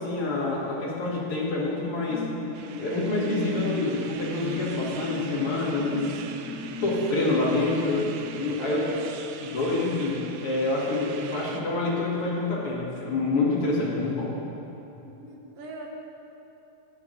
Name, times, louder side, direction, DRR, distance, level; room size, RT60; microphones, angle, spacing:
voice 1, 0.0-2.2 2.8-6.1 6.8-8.8 9.4-14.3, left 2 dB, 50° left, -5 dB, 2.1 m, -27 dB
sound 1, 1.9-9.6 10.1-10.2, left 2 dB, 70° left, 1.5 m, -37 dB
sound 2, 2.5-11.6, right 7 dB, 90° right, 2.1 m, -43 dB
voice 2, 8.6-9.1 15.0-15.9, right 2 dB, 65° right, 0 dB, 1.7 m, -41 dB
11.5 x 8.9 x 3.0 m, 3.0 s
omnidirectional pair, 3.6 m